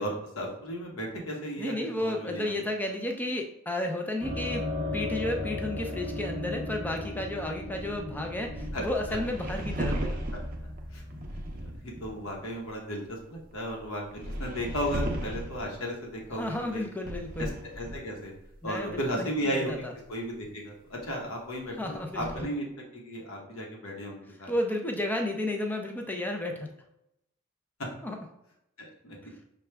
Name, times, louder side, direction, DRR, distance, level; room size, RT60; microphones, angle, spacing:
voice 1, 0.0-1.7 2.0-2.6 8.7-8.8 9.1-9.2 10.9-11.0 11.6-11.7 12.0-16.9 17.4-17.5 17.8-18.3 18.6-19.7 20.1-22.6 22.9-24.5 27.8-27.9 28.8-29.2, equal, 85° left, 0 dB, 1.0 m, -35 dB
voice 2, 1.6-10.2 16.3-17.6 18.6-19.9 21.8-22.5 24.5-26.7 28.0-28.2, left 1 dB, 10° left, 3 dB, 0.4 m, -32 dB
sound 1, 4.2-12.5, left 2 dB, 10° right, 0.8 m, -37 dB
sound 2, 8.6-12.1 12.3-12.4 13.1-15.7 16.0-19.1 19.4-19.5 19.7-19.8 20.4-20.5 22.0-22.4, right 1 dB, 40° right, 0.6 m, -36 dB
6.0 x 2.3 x 3.3 m, 0.84 s
head